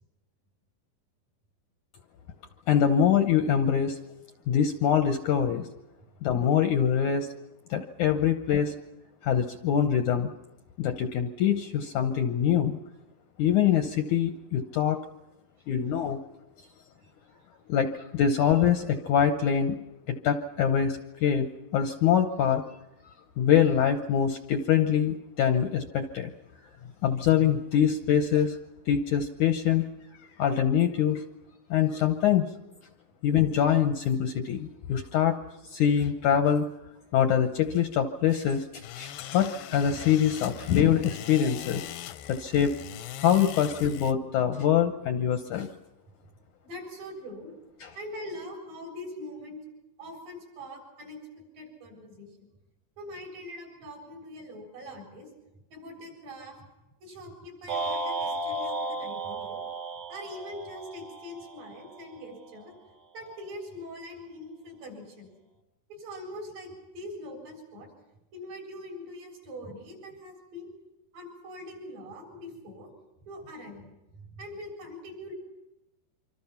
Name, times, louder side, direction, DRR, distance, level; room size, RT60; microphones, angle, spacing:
voice 1, 2.7-4.0 4.5-5.7 6.2-7.3 7.7-8.7 9.2-10.3 10.8-12.8 13.4-15.0 15.7-16.2 17.7-19.8 20.1-22.6 23.4-26.3 27.0-28.6 28.9-29.8 30.4-31.2 31.7-32.5 33.2-35.4 35.7-36.7 37.1-41.8 42.3-42.7 43.2-45.7 47.8-47.9, left 8 dB, 70° left, 7 dB, 2.0 m, -24 dB
sound 1, 38.8-44.1, left 12 dB, 85° left, 2.9 m, -41 dB
voice 2, 46.6-47.5 48.0-49.6 50.0-52.3 53.0-55.3 55.7-56.6 57.0-59.6 60.1-62.7 63.1-65.3 65.9-67.9 68.3-70.7 71.1-72.9 73.3-73.9 74.1-75.3, left 1 dB, 60° right, 0 dB, 9.1 m, -42 dB
sound 2, 57.7-62.0, right 2 dB, 45° right, 2.6 m, -34 dB
26.0 x 25.0 x 5.8 m, 0.96 s
omnidirectional pair, 4.4 m